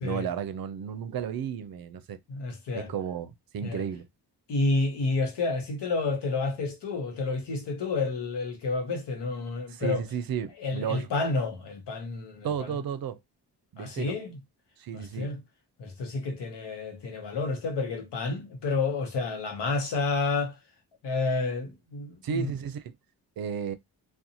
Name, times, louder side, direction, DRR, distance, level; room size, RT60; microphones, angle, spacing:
voice 1, 0.0-2.2 2.7-4.1 9.7-11.1 12.4-13.2 13.7-14.1 14.8-15.3 22.2-22.9 23.4-23.7, right 8 dB, 60° right, 0.5 m, -33 dB
voice 2, 2.3-2.9 3.6-3.8 4.5-10.0 10.6-12.8 13.8-14.4 14.9-15.4 15.8-20.6 21.0-22.5, left 3 dB, 85° left, 0.8 m, -30 dB
2.5 x 2.2 x 2.7 m
cardioid pair, 60°, 41 cm